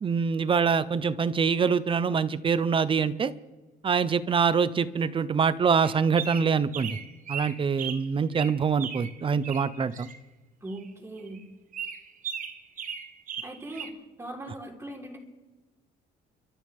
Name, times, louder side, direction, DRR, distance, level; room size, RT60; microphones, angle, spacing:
voice 1, 0.0-3.3 3.8-7.0 7.3-10.1, right 6 dB, 30° right, 15 dB, 0.8 m, -25 dB
sound 1, 5.8-8.1 8.3-10.2 10.7-10.9 11.2-11.4 11.7-13.9, right 7 dB, 50° right, 1.4 m, -37 dB
voice 2, 10.6-11.4 13.4-13.9 14.2-15.2, right 1 dB, 15° right, -1 dB, 4.2 m, -39 dB
30.0 x 13.0 x 3.6 m, 1.3 s
cardioid pair, 110°, 17 cm